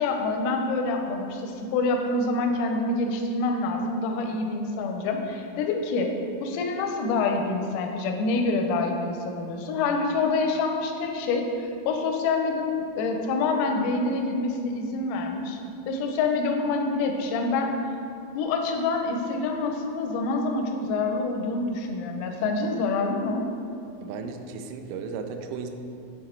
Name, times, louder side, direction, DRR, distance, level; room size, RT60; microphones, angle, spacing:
voice 1, 0.0-6.1 6.4-15.6 15.9-17.8 18.4-23.5, left 3 dB, 85° left, 3 dB, 3.3 m, -26 dB
voice 2, 24.0-25.7, right 5 dB, 85° right, 5 dB, 2.9 m, -35 dB
9.0 x 3.6 x 4.3 m, 2.6 s
omnidirectional pair, 6.0 m